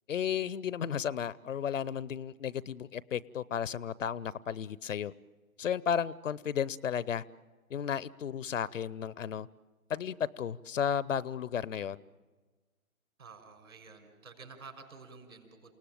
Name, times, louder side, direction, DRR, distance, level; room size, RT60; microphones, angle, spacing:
voice 1, 0.1-5.1 5.6-7.2 7.7-9.5 9.9-12.0, left 8 dB, 60° left, 21 dB, 0.7 m, -33 dB
voice 2, 13.2-15.7, right 4 dB, 70° right, 5 dB, 5.9 m, -51 dB
28.5 x 18.0 x 9.0 m, 1.3 s
figure-of-eight pair, 125°, 43 cm